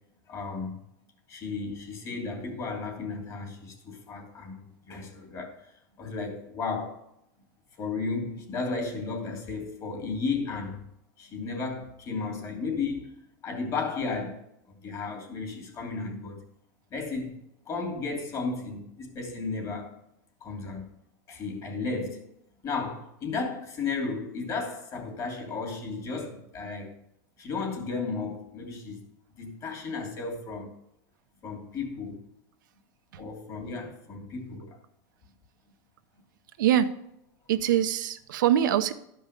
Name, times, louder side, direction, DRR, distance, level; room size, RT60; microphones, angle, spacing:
voice 1, 0.3-0.8 1.3-5.6 6.0-7.0 7.8-10.8 11.2-13.1 13.4-14.4 14.7-16.4 16.9-17.4 17.7-19.9 20.4-20.9 21.3-22.2 22.6-26.9 27.4-29.0 29.4-30.7 31.4-32.2 33.2-34.8, left 4 dB, 35° left, 2.9 m, -34 dB
voice 2, 36.6-36.9 37.5-38.9, right 11 dB, 90° right, 0.9 m, -23 dB
12.5 x 5.5 x 6.7 m
supercardioid pair, 145°, 10 cm